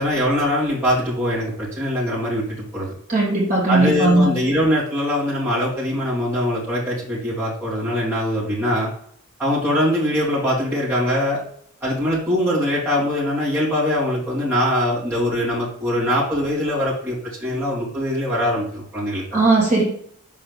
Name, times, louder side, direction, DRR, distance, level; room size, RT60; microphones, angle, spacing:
voice 1, 0.0-2.9 3.7-8.9 9.4-11.4 11.8-19.4, left 1 dB, 10° right, -9 dB, 2.4 m, -22 dB
voice 2, 3.1-4.3 19.3-19.8, right 2 dB, 35° right, -4 dB, 2.4 m, -17 dB
6.3 x 3.9 x 5.3 m, 0.65 s
head